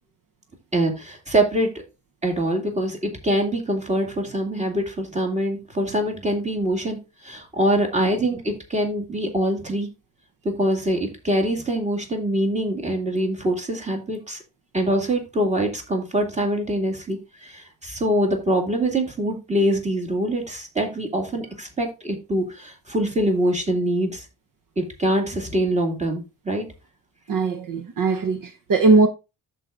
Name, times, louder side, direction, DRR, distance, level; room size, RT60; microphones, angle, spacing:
voice 1, 0.7-1.7 2.2-7.0 7.2-9.9 10.4-14.4 14.7-24.3 24.8-26.7, right 1 dB, 20° right, 2.3 m, -24 dB
voice 2, 27.3-29.1, right 3 dB, 60° right, 1.0 m, -19 dB
14.0 x 4.8 x 2.5 m
wide cardioid pair, 165°, 37 cm